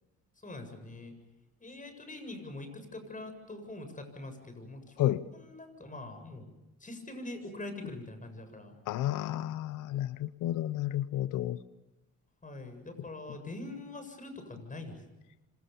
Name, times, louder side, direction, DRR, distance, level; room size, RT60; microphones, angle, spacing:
voice 1, 0.4-1.1 1.6-6.5 6.8-8.8 12.4-15.0, left 2 dB, 25° left, 8 dB, 7.7 m, -44 dB
voice 2, 8.9-11.6, left 13 dB, 90° left, 14 dB, 0.9 m, -31 dB
27.5 x 26.0 x 7.1 m, 1.0 s
cardioid pair, 90°, 30 cm